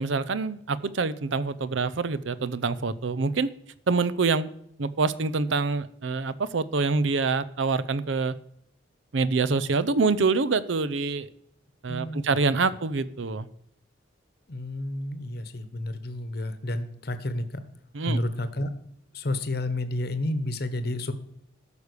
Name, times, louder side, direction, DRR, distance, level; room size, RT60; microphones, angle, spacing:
voice 1, 0.0-3.5 3.9-4.5 4.8-8.3 9.1-11.3 11.8-13.5 17.9-18.2, right 4 dB, 75° right, 16 dB, 0.6 m, -26 dB
voice 2, 11.9-12.4 14.5-17.5 18.1-18.7 19.1-21.1, left 1 dB, 50° left, 11 dB, 1.0 m, -30 dB
13.0 x 5.1 x 6.6 m, 0.72 s
head